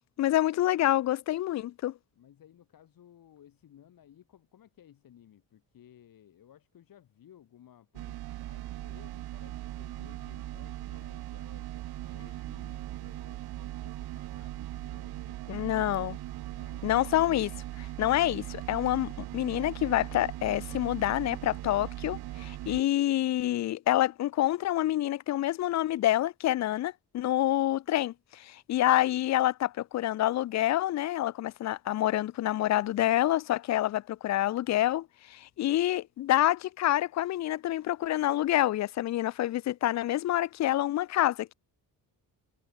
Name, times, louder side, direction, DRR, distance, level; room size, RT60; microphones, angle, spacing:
voice 1, 0.2-1.9 15.5-16.2 16.8-41.5, left 14 dB, 50° left, 0.4 m, -27 dB
voice 2, 2.1-11.8 12.1-16.1 16.5-16.9 28.8-29.1, left 10 dB, 65° left, 4.9 m, -58 dB
sound 1, 7.9-22.8, right 15 dB, 85° right, 1.1 m, -39 dB
cardioid pair, 120°, 37 cm